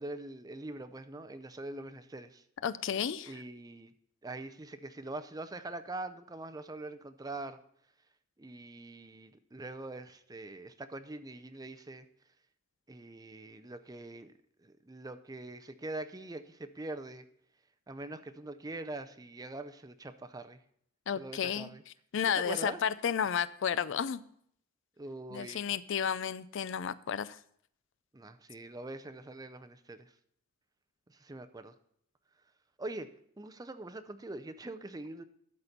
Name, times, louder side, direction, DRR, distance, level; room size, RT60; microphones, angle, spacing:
voice 1, 0.0-2.4 3.2-3.9 4.2-7.6 8.4-12.1 12.9-14.3 14.6-17.2 17.9-20.6 21.2-21.8 22.3-22.8 25.0-25.6 28.1-30.1 31.1-31.7 32.8-33.1 33.4-35.2, right 2 dB, 15° right, 10 dB, 0.5 m, -43 dB
voice 2, 2.6-3.3 21.1-21.7 22.1-24.2 25.3-27.4, left 8 dB, 60° left, 16 dB, 0.4 m, -32 dB
12.5 x 4.3 x 6.6 m, 0.68 s
head